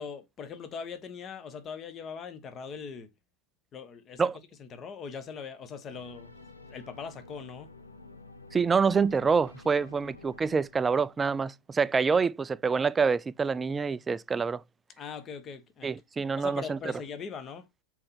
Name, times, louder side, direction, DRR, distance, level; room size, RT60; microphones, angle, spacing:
voice 1, 0.0-3.1 3.7-4.3 4.6-6.3 6.6-7.7 15.0-15.9 16.4-17.6, left 6 dB, 30° left, 1.2 m, -41 dB
sound 1, 5.9-11.4, left 3 dB, 85° left, 0.9 m, -51 dB
voice 2, 8.5-14.6 15.8-16.8, right 5 dB, 15° right, 0.3 m, -26 dB
6.3 x 4.4 x 4.3 m
figure-of-eight pair, 85°, 0 cm